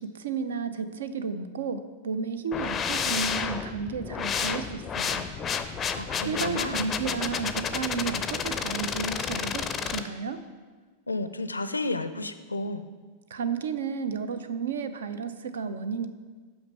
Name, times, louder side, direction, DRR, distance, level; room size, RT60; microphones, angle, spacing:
voice 1, 0.0-5.3 6.3-10.4 13.3-16.1, right 5 dB, 65° right, 12 dB, 0.5 m, -32 dB
sound 1, 2.5-10.0, left 6 dB, 25° left, 0.4 m, -31 dB
voice 2, 5.9-6.8 11.1-12.8, left 2 dB, 80° left, 11 dB, 0.4 m, -32 dB
5.8 x 5.4 x 6.3 m, 1.4 s
figure-of-eight pair, 90°, 0 cm